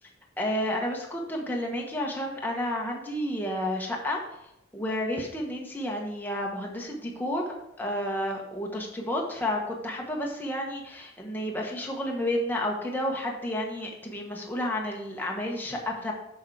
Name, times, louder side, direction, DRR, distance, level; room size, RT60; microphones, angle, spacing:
voice 1, 0.4-4.2 4.7-7.4 7.8-16.1, left 1 dB, 10° left, -1 dB, 1.1 m, -31 dB
6.5 x 6.1 x 4.7 m, 0.85 s
head